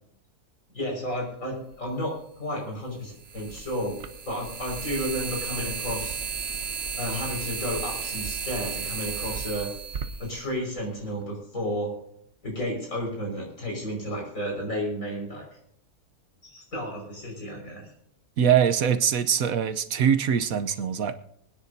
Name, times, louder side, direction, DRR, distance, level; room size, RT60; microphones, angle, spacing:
voice 1, 0.7-4.0 4.2-6.2 7.0-9.7 10.2-11.9 12.4-15.4 16.5-17.9, equal, 60° left, -1 dB, 5.8 m, -32 dB
sound 1, 1.7-1.8 3.2-11.1, right 6 dB, 50° right, 1.1 m, -34 dB
voice 2, 18.4-21.1, right 8 dB, 70° right, 9 dB, 1.2 m, -23 dB
24.5 x 9.8 x 2.7 m, 0.73 s
omnidirectional pair, 1.6 m